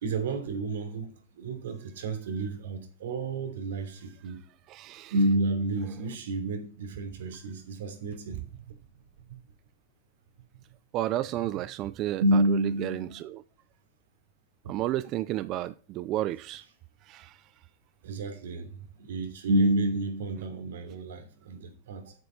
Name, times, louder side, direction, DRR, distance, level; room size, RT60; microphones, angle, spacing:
voice 1, 0.0-1.1 1.4-4.4 5.1-8.7 12.2-13.2 14.6-14.8 18.0-18.7 19.0-22.1, right 1 dB, 85° right, 3.2 m, -29 dB
voice 2, 4.7-5.1 10.9-13.4 14.7-16.6 17.0-17.4, right 14 dB, 35° right, 0.4 m, -32 dB
8.2 x 8.0 x 5.7 m
supercardioid pair, 145°, 0 cm